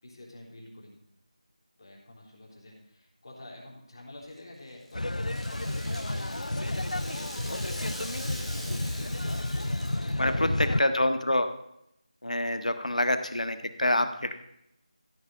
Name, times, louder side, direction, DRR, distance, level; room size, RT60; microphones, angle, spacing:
voice 1, 0.0-1.0 1.8-11.1, left 1 dB, 40° left, -2 dB, 3.8 m, -48 dB
Rattle (instrument), 4.2-10.4, equal, ahead, 0.5 m, -44 dB
sound 1, 4.9-10.8, left 1 dB, 85° left, 0.3 m, -31 dB
voice 2, 10.2-11.5 12.2-14.3, left 1 dB, 70° left, 9 dB, 1.4 m, -26 dB
14.5 x 5.8 x 7.8 m, 0.80 s
figure-of-eight pair, 165°, 4 cm